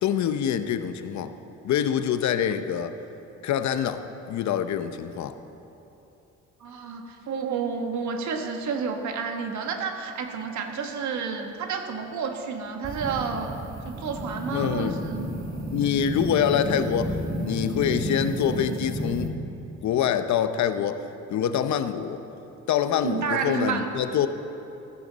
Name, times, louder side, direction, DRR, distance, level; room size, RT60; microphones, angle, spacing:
voice 1, 0.0-1.3 1.6-2.9 3.4-5.3 14.5-15.0 15.7-17.1 17.4-19.3 19.8-21.0 21.3-22.2 22.7-24.3, left 9 dB, 70° left, 10 dB, 0.7 m, -25 dB
voice 2, 6.6-13.5 13.8-15.3 23.0-23.9, right 5 dB, 70° right, 4 dB, 1.4 m, -30 dB
sound 1, 12.8-19.3, equal, 45° right, 1.9 m, -32 dB
14.5 x 14.0 x 4.1 m, 2.9 s
cardioid pair, 90°, 30 cm